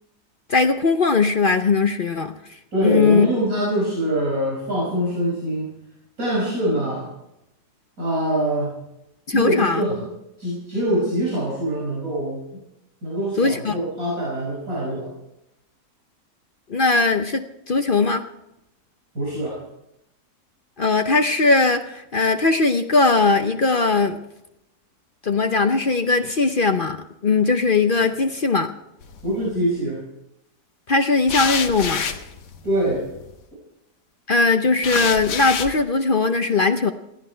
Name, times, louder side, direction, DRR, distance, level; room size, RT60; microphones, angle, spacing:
voice 1, 0.5-2.3 2.8-3.3 9.3-9.8 13.4-13.7 16.7-18.2 20.8-24.2 25.2-28.7 30.9-32.0 34.3-36.9, left 3 dB, 45° left, 7 dB, 0.7 m, -19 dB
voice 2, 2.7-5.7 6.2-7.1 8.0-8.8 9.3-10.1 10.4-12.4 13.0-15.1 19.1-19.6 29.2-30.0 32.6-33.1, right 1 dB, 60° right, -5 dB, 5.9 m, -24 dB
sound 1, 29.0-29.6 31.3-33.3 34.8-35.8, left 6 dB, 85° left, 1.8 m, -28 dB
20.0 x 14.5 x 4.5 m, 0.86 s
omnidirectional pair, 1.7 m